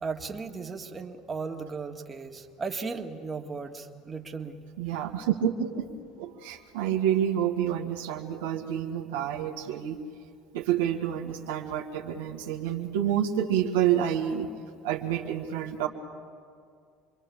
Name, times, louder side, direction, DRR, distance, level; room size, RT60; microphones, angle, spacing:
voice 1, 0.0-4.6, right 4 dB, 25° right, 3 dB, 2.1 m, -36 dB
voice 2, 4.8-5.9 6.2-10.0 10.5-14.5 14.8-15.9, right 10 dB, 90° right, 2 dB, 1.8 m, -28 dB
27.5 x 22.5 x 7.2 m, 2.3 s
supercardioid pair, 90°, 0 cm